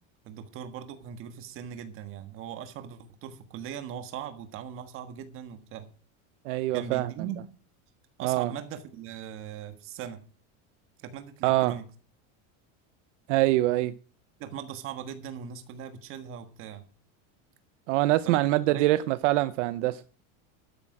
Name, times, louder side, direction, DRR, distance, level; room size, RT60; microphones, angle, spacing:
voice 1, 0.2-5.9 6.7-7.4 8.2-10.2 11.0-11.8 14.4-16.8 18.2-18.9, right 8 dB, 35° right, 1.5 m, -40 dB
voice 2, 6.5-7.1 8.2-8.5 11.4-11.7 13.3-13.9 17.9-20.0, right 17 dB, 65° right, 0.7 m, -24 dB
12.0 x 9.9 x 4.8 m
cardioid pair, 180°, 39 cm